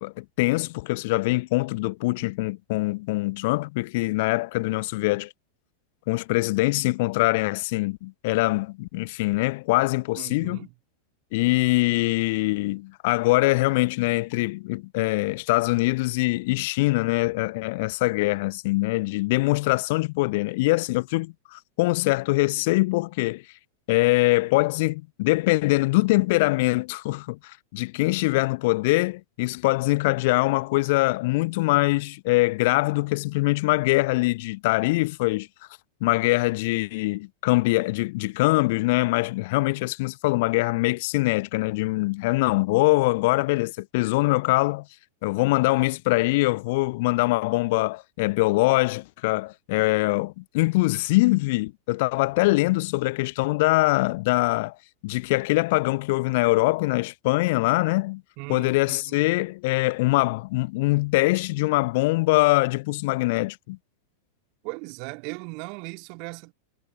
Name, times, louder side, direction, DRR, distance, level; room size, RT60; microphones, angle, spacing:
voice 1, 0.0-5.3 6.1-10.6 11.3-23.4 23.9-35.5 36.0-44.8 45.2-54.8 55.0-58.2 58.5-63.8, left 22 dB, 50° left, 0.9 m, -23 dB
voice 2, 10.2-10.7 58.4-59.1 64.6-66.5, right 35 dB, 45° right, 3.0 m, -38 dB
figure-of-eight pair, 90°, 0 cm